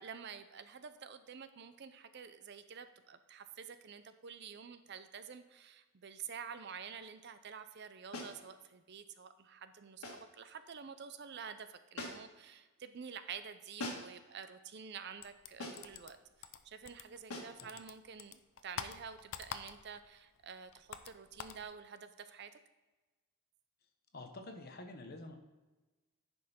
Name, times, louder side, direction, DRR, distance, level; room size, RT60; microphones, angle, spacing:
voice 1, 0.0-22.5, right 6 dB, 50° right, 11 dB, 0.5 m, -49 dB
sound 1, 8.1-8.4 10.0-10.3 12.0-12.4 13.8-14.2 15.6-16.0 17.3-17.6, left 1 dB, 80° left, 1.7 m, -43 dB
sound 2, 15.2-17.3 17.6-20.1 20.4-21.6, left 7 dB, 60° left, 0.5 m, -46 dB
voice 2, 24.1-25.4, left 2 dB, 45° left, 5 dB, 0.9 m, -48 dB
10.0 x 5.4 x 4.3 m, 1.2 s
head